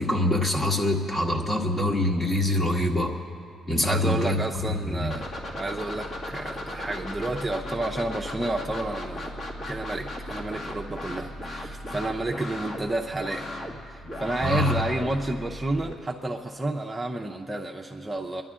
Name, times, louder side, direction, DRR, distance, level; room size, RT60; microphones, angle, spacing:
voice 1, 0.0-3.1 3.7-4.4 4.9-5.2 14.4-14.7, left 1 dB, 30° left, 1 dB, 1.7 m, -24 dB
voice 2, 3.8-13.5 13.9-18.4, right 2 dB, 15° right, 0 dB, 0.7 m, -30 dB
sound 1, 5.1-15.9, left 1 dB, 50° left, 2.2 m, -36 dB
24.5 x 11.0 x 3.7 m, 2.3 s
cardioid pair, 90°, 0 cm